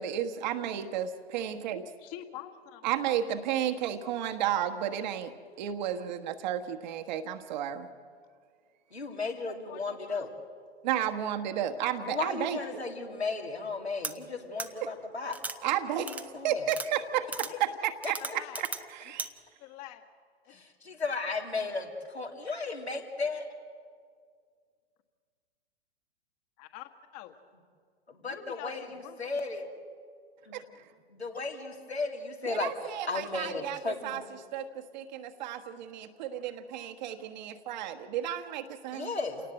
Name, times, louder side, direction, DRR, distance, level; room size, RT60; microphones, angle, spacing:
voice 1, 0.0-1.8 2.8-5.3 5.6-7.9 10.8-12.8 15.6-16.1 16.4-17.5 18.1-18.4 18.9-19.3 30.5-30.6 32.4-33.8 34.0-34.2 34.5-39.1, right 10 dB, 45° right, 7 dB, 1.4 m, -32 dB
voice 2, 2.0-3.3 9.2-10.3 15.6-15.8 17.4-17.8 18.2-18.6 19.6-20.1 20.4-20.6 26.6-27.4 28.2-29.4, left 12 dB, 35° left, 8 dB, 1.7 m, -46 dB
voice 3, 8.9-10.3 12.0-15.4 16.0-16.7 18.0-18.1 20.5-23.5 28.1-29.7 30.4-30.6 31.1-34.2 38.9-39.4, left 3 dB, 85° left, 1 dB, 2.9 m, -35 dB
sound 1, 14.0-14.1 14.6-14.7 15.3-15.6 16.1-16.2 16.7-16.9 17.3-17.5 18.0-18.8 19.2-19.3, right 3 dB, 5° right, 0.6 m, -36 dB
28.5 x 18.5 x 7.9 m, 2.1 s
figure-of-eight pair, 105°, 32 cm